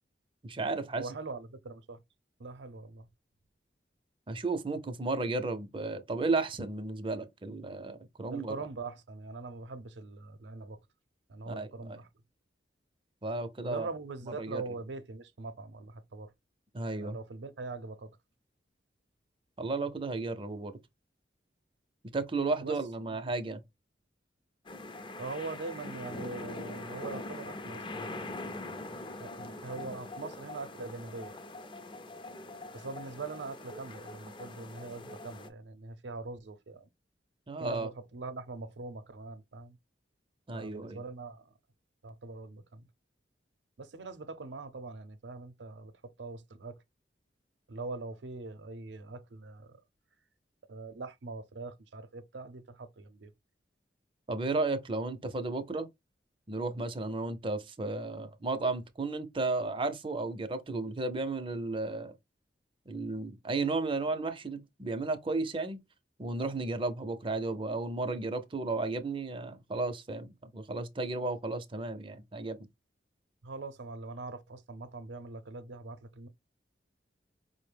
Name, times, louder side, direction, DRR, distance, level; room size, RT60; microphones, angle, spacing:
voice 1, 0.4-1.1 4.3-8.6 11.5-12.0 13.2-13.9 14.4-14.6 16.7-17.2 19.6-20.7 22.1-23.6 37.5-37.9 40.5-41.0 54.3-55.9 56.5-62.1 62.9-65.8 66.2-72.6, right 3 dB, 30° right, 0.6 m, -33 dB
voice 2, 1.0-2.0 2.4-3.1 8.3-10.8 11.3-12.1 13.6-16.3 16.9-18.2 22.6-22.8 23.1-23.2 25.2-28.5 29.2-31.3 32.7-36.9 37.6-39.8 40.5-41.5 42.0-42.9 43.8-46.8 47.7-49.8 50.7-53.3 73.4-76.3, right 3 dB, 85° right, 0.6 m, -42 dB
sound 1, 24.7-35.5, left 2 dB, 30° left, 0.5 m, -43 dB
5.0 x 2.1 x 3.3 m
head